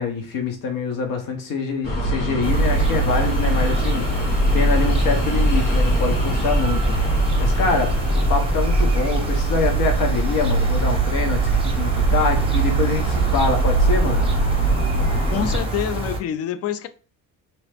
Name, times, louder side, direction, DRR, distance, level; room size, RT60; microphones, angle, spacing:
voice 1, 0.0-6.9 7.4-7.9 8.3-14.3, left 4 dB, 75° left, 1.0 m, -25 dB
sound 1, 1.8-15.6, right 2 dB, 90° left, 1.5 m, -21 dB
sound 2, 2.4-16.2, right 2 dB, 15° right, 0.8 m, -28 dB
voice 2, 15.3-16.9, left 9 dB, 45° left, 0.4 m, -26 dB
2.9 x 2.8 x 3.3 m
cardioid pair, 110°, 34 cm